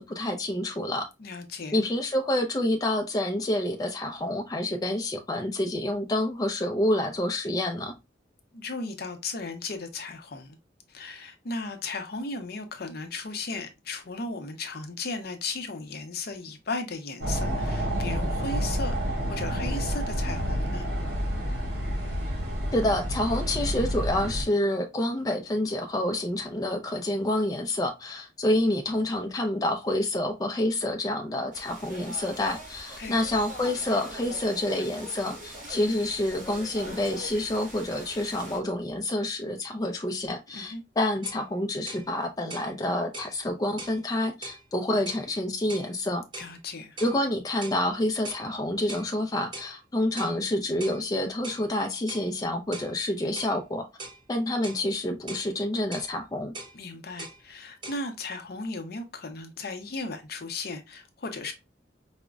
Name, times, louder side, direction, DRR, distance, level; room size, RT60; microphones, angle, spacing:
voice 1, 0.0-1.1 1.7-7.9 22.7-46.2 47.0-53.9 54.3-56.5, left 1 dB, 20° left, 0.4 m, -28 dB
voice 2, 1.2-1.8 8.5-10.6 10.9-20.9 33.0-33.2 40.5-40.8 46.4-47.0 56.7-61.5, left 3 dB, 60° left, 0.6 m, -36 dB
sound 1, 17.2-24.4, equal, 65° right, 1.6 m, -29 dB
sound 2, 31.5-38.6, right 1 dB, 50° right, 1.9 m, -42 dB
sound 3, 41.2-41.4 41.9-42.1 42.5-42.7 43.1-43.3 43.8-44.0 44.4-44.6 45.1-45.3 45.7-45.9 46.3-46.5 47.0-47.2 47.6-47.8 48.2-48.5 48.9-49.1 49.5-49.7 50.2-50.4 50.8-51.0 51.4-51.6 52.1-52.3 52.7-52.9 53.4-53.6 54.0-54.2 54.6-54.8 55.3-55.5 55.9-56.1 56.5-56.8 57.2-57.4 57.8-58.0, right 2 dB, 25° right, 0.5 m, -41 dB
4.9 x 2.1 x 2.3 m
head